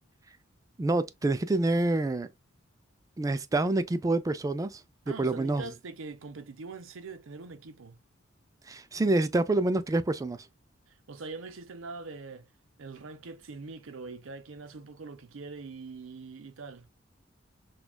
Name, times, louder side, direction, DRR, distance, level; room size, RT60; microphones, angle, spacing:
voice 1, 0.8-2.3 3.2-4.8 5.2-5.7 8.7-10.5, right 2 dB, 15° right, 0.3 m, -27 dB
voice 2, 5.1-8.0 10.9-12.5 12.8-16.9, right 4 dB, 80° right, 0.7 m, -43 dB
6.1 x 2.3 x 2.2 m
head